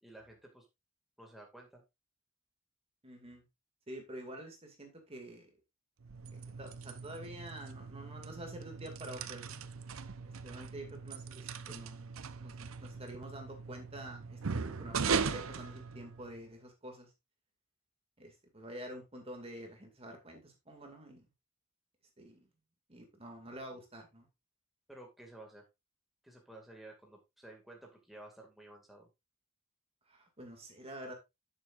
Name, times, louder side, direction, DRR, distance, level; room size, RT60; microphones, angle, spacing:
voice 1, 0.0-0.7 1.2-1.8 24.9-25.6 26.2-29.1, right 1 dB, ahead, 0 dB, 2.2 m, -53 dB
voice 2, 3.0-3.4 3.9-5.5 6.6-9.5 10.4-17.1 18.2-21.3 22.2-22.4 22.9-24.3 30.1-31.1, right 1 dB, 30° right, 3 dB, 2.2 m, -48 dB
sound 1, 6.0-16.5, right 5 dB, 85° right, 0.7 m, -39 dB
11.0 x 7.5 x 2.5 m, 0.22 s
head